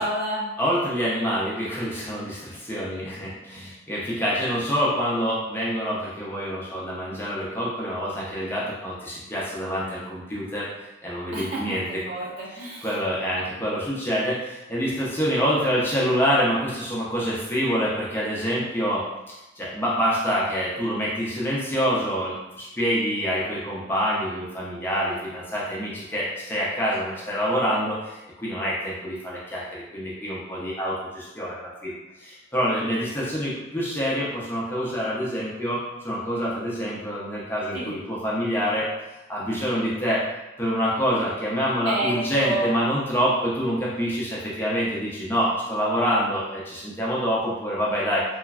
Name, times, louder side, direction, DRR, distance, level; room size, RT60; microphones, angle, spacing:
voice 1, 0.0-0.5 11.3-13.0 37.7-37.9 41.8-42.7, right 1 dB, 90° right, -6 dB, 1.0 m, -29 dB
voice 2, 0.6-10.7 11.0-11.9 12.8-19.0 19.6-38.9 39.3-40.2 40.6-48.2, equal, 10° left, -7 dB, 0.5 m, -26 dB
3.0 x 2.2 x 2.4 m, 1.0 s
head